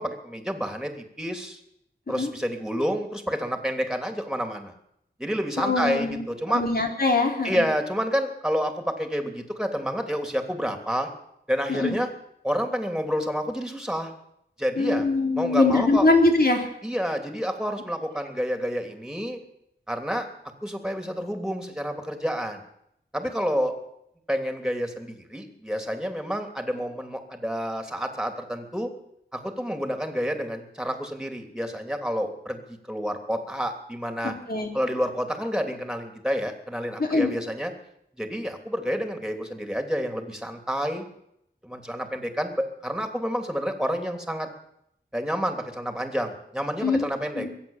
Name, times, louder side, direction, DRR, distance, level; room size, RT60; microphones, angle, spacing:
voice 1, 0.0-1.6 2.1-4.7 5.2-6.6 7.4-11.1 11.5-12.1 12.4-14.1 14.6-15.1 15.3-16.1 16.8-19.4 19.9-20.3 20.6-22.6 23.1-23.7 24.3-28.9 29.3-34.3 34.7-37.7 38.2-41.0 41.6-44.5 45.1-47.5, equal, 5° right, 5 dB, 3.2 m, -29 dB
voice 2, 5.6-7.7 11.7-12.0 14.8-16.7 34.2-34.7 37.0-37.3 46.8-47.1 47.4-47.5, left 3 dB, 55° left, 2 dB, 3.6 m, -23 dB
22.0 x 8.4 x 7.4 m, 0.76 s
cardioid pair, 40°, 19 cm